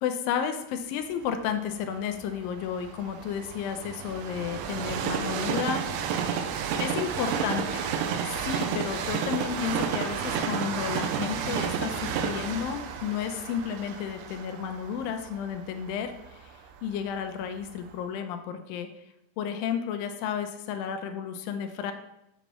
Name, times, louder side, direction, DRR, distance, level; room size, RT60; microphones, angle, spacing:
voice 1, 0.0-5.8 6.8-7.9 8.4-16.4 16.8-18.9 19.4-21.9, left 8 dB, 80° left, 7 dB, 2.1 m, -32 dB
Train, 1.2-17.2 17.8-17.9, right 7 dB, 80° right, 2.2 m, -32 dB
7.1 x 6.9 x 3.0 m, 0.84 s
omnidirectional pair, 4.4 m